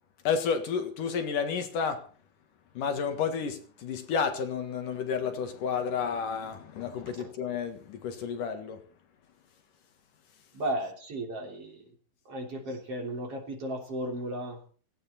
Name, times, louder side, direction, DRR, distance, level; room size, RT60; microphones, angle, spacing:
voice 1, 0.2-2.0 2.7-8.8, left 6 dB, 70° left, 3.2 m, -31 dB
voice 2, 10.5-11.9 12.3-14.6, right 1 dB, 45° right, 4.0 m, -35 dB
17.5 x 15.0 x 4.3 m
omnidirectional pair, 4.0 m